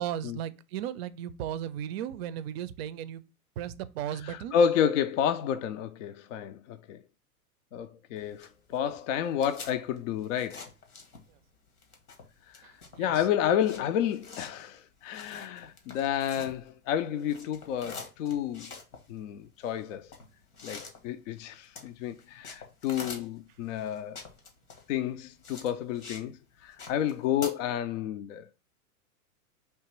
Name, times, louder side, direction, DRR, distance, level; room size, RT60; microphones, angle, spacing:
voice 1, 0.0-3.2 3.6-4.5 11.3-11.4 12.6-13.3, right 10 dB, 45° right, 0.4 m, -36 dB
voice 2, 4.3-7.0 7.7-10.7 12.5-12.7 13.0-18.7 19.1-20.1 20.6-24.2 24.9-26.4 26.6-28.5, left 9 dB, 60° left, 0.5 m, -30 dB
sound 1, 8.2-11.5 11.8-16.9 17.2-26.3 26.6-27.5, left 4 dB, 85° left, 1.4 m, -46 dB
3.4 x 2.9 x 4.3 m
hypercardioid pair, 105°, 44 cm